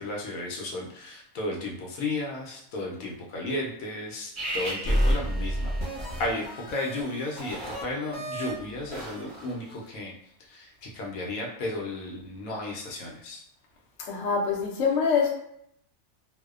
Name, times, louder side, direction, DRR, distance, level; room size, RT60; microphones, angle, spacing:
voice 1, 0.0-5.7 6.2-10.1 10.4-13.4, left 2 dB, 85° left, -2 dB, 1.0 m, -34 dB
sound 1, 4.4-9.8, equal, 30° right, 0.6 m, -30 dB
voice 2, 14.0-15.3, left 5 dB, 65° left, -1 dB, 0.8 m, -25 dB
2.6 x 2.0 x 2.4 m, 0.71 s
omnidirectional pair, 1.5 m